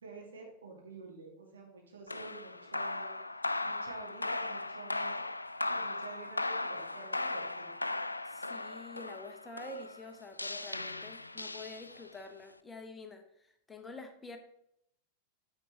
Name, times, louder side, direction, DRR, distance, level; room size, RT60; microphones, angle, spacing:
voice 1, 0.0-3.1 3.6-5.2 5.7-7.7, right 4 dB, 70° right, -1 dB, 2.7 m, -49 dB
sound 1, 2.1-12.2, left 2 dB, 85° left, 0.3 m, -37 dB
voice 2, 8.2-14.4, left 2 dB, 15° left, 5 dB, 1.0 m, -48 dB
9.7 x 7.1 x 3.4 m, 0.76 s
figure-of-eight pair, 90°, 0 cm